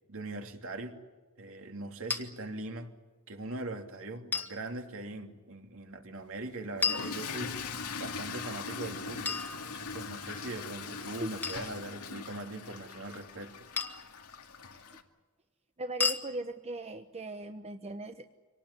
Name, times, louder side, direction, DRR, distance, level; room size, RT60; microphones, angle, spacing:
voice 1, 0.1-1.0 1.4-2.9 3.3-7.6 8.0-13.5, right 2 dB, 65° right, 4 dB, 2.9 m, -41 dB
sound 1, 2.1-2.2 4.3-4.6 6.8-7.7 9.3-10.1 11.4-11.7 13.8-14.2 16.0-16.3, left 4 dB, 10° left, 1.6 m, -33 dB
Toilet flush / Fill (with liquid), 6.7-15.0, left 5 dB, 90° left, 2.1 m, -41 dB
voice 2, 15.8-18.4, right 1 dB, 30° right, 7 dB, 1.0 m, -39 dB
25.5 x 19.0 x 9.8 m, 1.3 s
head